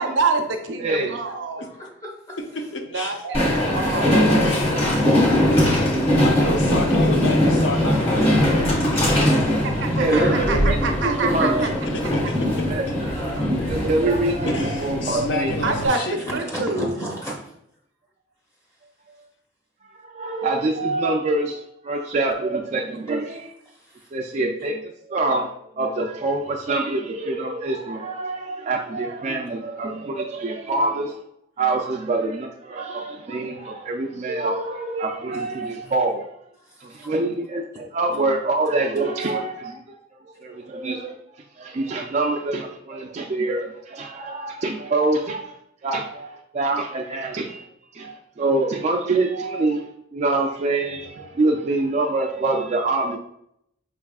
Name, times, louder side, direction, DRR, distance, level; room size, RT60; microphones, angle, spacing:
voice 1, 0.0-1.6 2.8-4.4 4.7-5.1 6.8-6.9 7.2-7.7 8.0-8.7 9.6-11.7 12.0-12.1 15.6-17.1, right 3 dB, 80° right, 0.6 m, -27 dB
voice 2, 0.8-1.2 10.0-10.8 11.0-11.8 12.7-12.8 13.6-15.5 16.3-16.4 19.9-23.6 24.1-31.2 31.6-36.3 36.8-40.0 40.2-47.7 47.9-53.2, right 2 dB, 35° right, 0.3 m, -25 dB
voice 3, 1.6-2.4 3.0-3.1 3.9-4.8 5.1-5.2 9.5-9.7 9.9-10.6 13.0-13.8 15.8-16.0 16.3-17.4 23.7-24.1 35.3-35.4 35.8-35.9 36.6-37.1 39.2-39.3, equal, 15° left, 0.7 m, -34 dB
voice 4, 2.5-3.2 4.4-9.0 11.6-12.7 14.5-16.3, left 2 dB, 65° left, 0.6 m, -31 dB
Train, 3.3-15.9, left 1 dB, 30° left, 1.2 m, -21 dB
5.5 x 3.4 x 2.3 m
head